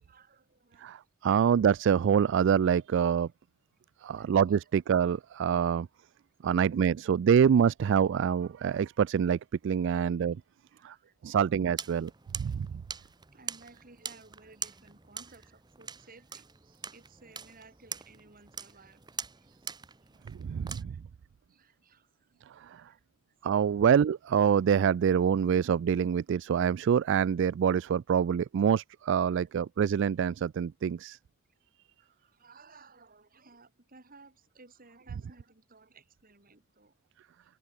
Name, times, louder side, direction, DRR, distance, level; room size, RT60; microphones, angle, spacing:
voice 1, 0.0-1.0 4.0-4.6 5.5-5.7 10.7-11.4 12.4-12.6 13.0-19.8 20.0-20.1 20.4-21.0 21.5-22.5 22.8-23.0 23.7-23.8 29.4-29.5 32.0-36.9, right 3 dB, 45° right, 3.8 m, -58 dB
voice 2, 0.8-3.3 4.0-5.9 6.4-10.4 10.8-10.9 11.2-12.1 12.4-12.8 20.3-21.0 22.6-22.8 23.4-31.2, right 7 dB, 60° right, 0.3 m, -26 dB
sound 1, 11.8-20.8, right 6 dB, 20° right, 0.8 m, -43 dB
open air
head